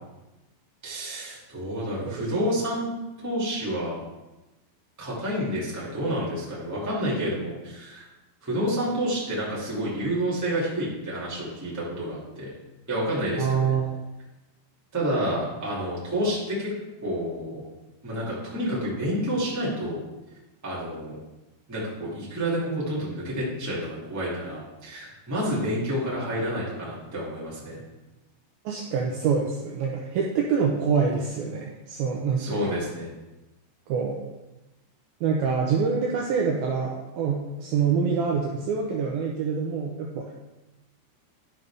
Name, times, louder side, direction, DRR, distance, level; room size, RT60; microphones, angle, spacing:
voice 1, 0.8-2.9 3.2-4.0 5.0-8.0 8.4-12.5 12.9-13.7 14.9-16.7 17.0-17.6 18.0-20.0 20.6-21.1 21.7-27.8 32.4-33.1, equal, 5° right, -7 dB, 1.2 m, -29 dB
voice 2, 13.4-14.0 28.7-32.9 33.9-34.2 35.2-40.3, right 6 dB, 85° right, -1 dB, 2.2 m, -26 dB
12.0 x 5.4 x 3.5 m, 1.0 s
omnidirectional pair, 5.0 m